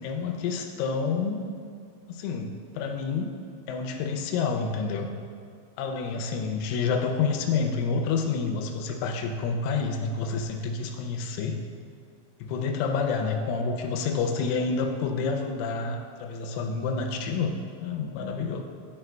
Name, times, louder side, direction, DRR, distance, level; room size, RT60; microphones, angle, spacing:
voice 1, 0.0-1.5 2.1-3.3 3.7-5.1 5.8-11.6 12.4-18.6, left 5 dB, 85° left, 3 dB, 2.9 m, -28 dB
11.5 x 5.9 x 2.2 m, 2.4 s
omnidirectional pair, 5.8 m